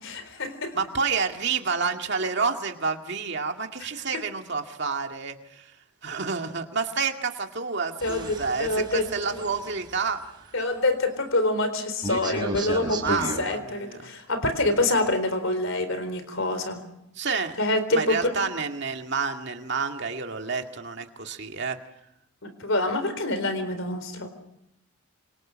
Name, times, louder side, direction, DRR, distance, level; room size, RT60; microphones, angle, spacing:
voice 1, 0.0-0.8 8.0-9.4 10.5-16.8 17.6-18.3 22.4-24.3, left 2 dB, 60° left, 10 dB, 4.0 m, -26 dB
voice 2, 0.7-5.7 6.0-10.2 13.0-14.1 17.2-17.6 17.9-21.8, right 5 dB, 50° right, 4 dB, 2.2 m, -29 dB
sound 1, 8.0-10.1 12.0-13.4, right 1 dB, 20° right, 4.9 m, -34 dB
27.5 x 27.0 x 6.5 m, 0.80 s
head